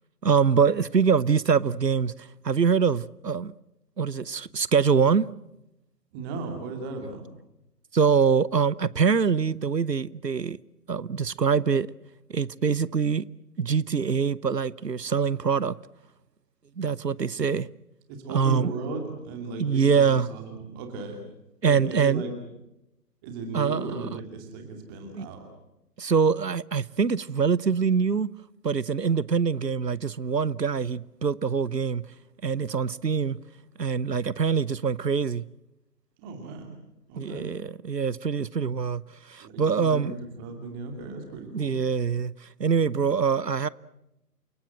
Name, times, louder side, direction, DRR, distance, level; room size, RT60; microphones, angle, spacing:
voice 1, 0.2-2.1 2.4-3.5 4.0-5.3 7.9-10.6 10.9-11.9 12.3-13.2 13.6-15.7 16.8-17.7 18.3-18.7 19.6-20.3 21.6-22.2 23.5-24.1 25.1-25.3 26.0-28.3 28.6-32.0 32.4-33.4 33.8-35.4 37.2-39.0 39.3-40.2 41.5-42.3 42.6-43.7, right 6 dB, 80° right, 0.9 m, -24 dB
voice 2, 6.1-7.2 18.1-21.2 21.6-22.3 23.2-25.4 36.2-36.7 37.1-37.4 39.4-41.8, right 3 dB, 15° right, 2.5 m, -36 dB
29.0 x 17.5 x 7.8 m
figure-of-eight pair, 145°, 48 cm